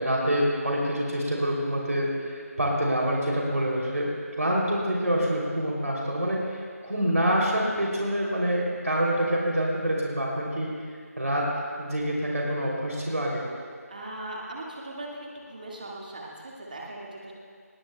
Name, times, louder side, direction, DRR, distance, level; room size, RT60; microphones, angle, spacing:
voice 1, 0.0-4.1 4.4-10.7 11.2-11.5 11.8-13.4, equal, 65° right, -3 dB, 3.0 m, -26 dB
voice 2, 13.9-17.3, right 1 dB, 30° right, -3 dB, 1.9 m, -39 dB
19.5 x 17.5 x 2.3 m, 2.1 s
figure-of-eight pair, 170°, 9 cm